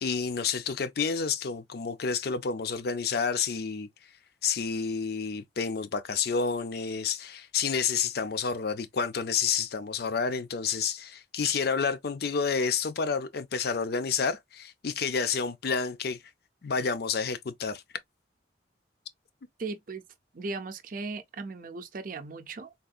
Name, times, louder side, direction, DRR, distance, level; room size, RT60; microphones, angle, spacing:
voice 1, 0.0-3.9 4.4-16.2 16.6-17.8, left 5 dB, 55° left, 0.5 m, -29 dB
voice 2, 19.6-20.0 20.3-22.7, right 3 dB, 50° right, 0.5 m, -37 dB
3.5 x 2.6 x 2.3 m
head